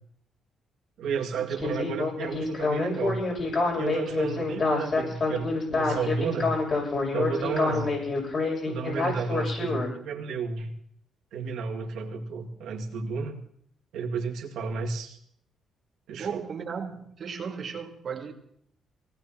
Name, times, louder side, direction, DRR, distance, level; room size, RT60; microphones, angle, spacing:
voice 1, 1.0-3.2 3.8-6.5 7.1-8.0 8.7-10.7 11.3-13.4 13.9-15.2 16.1-16.4, right 5 dB, 80° right, 2.1 m, -32 dB
Speech synthesizer, 1.6-9.9, left 3 dB, 45° left, 6.7 m, -27 dB
voice 2, 16.2-18.3, right 6 dB, 50° right, 2.0 m, -36 dB
23.5 x 18.5 x 2.9 m
cardioid pair, 90°, 0 cm